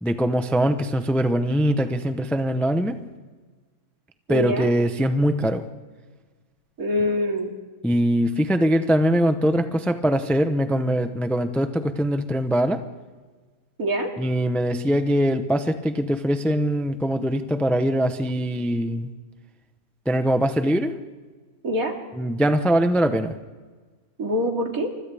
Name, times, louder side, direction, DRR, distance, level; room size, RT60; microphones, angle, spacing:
voice 1, 0.0-3.0 4.3-5.6 7.8-12.8 14.2-19.1 20.1-20.9 22.2-23.4, equal, ahead, 8 dB, 0.6 m, -22 dB
voice 2, 4.3-4.7 6.8-7.5 13.8-14.1 21.6-21.9 24.2-24.9, equal, 65° right, 2 dB, 2.9 m, -24 dB
29.5 x 25.5 x 3.5 m, 1.4 s
omnidirectional pair, 1.6 m